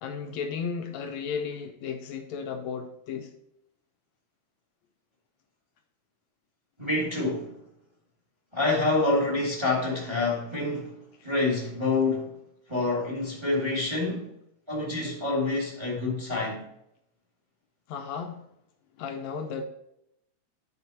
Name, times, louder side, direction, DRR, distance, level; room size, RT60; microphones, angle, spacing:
voice 1, 0.0-3.3 17.9-18.4 19.0-19.6, left 6 dB, 75° left, 1.7 m, -34 dB
voice 2, 6.8-7.6 8.5-12.3 12.7-14.3 14.7-16.6, left 2 dB, 10° right, 1.4 m, -27 dB
9.6 x 4.8 x 4.1 m
omnidirectional pair, 3.7 m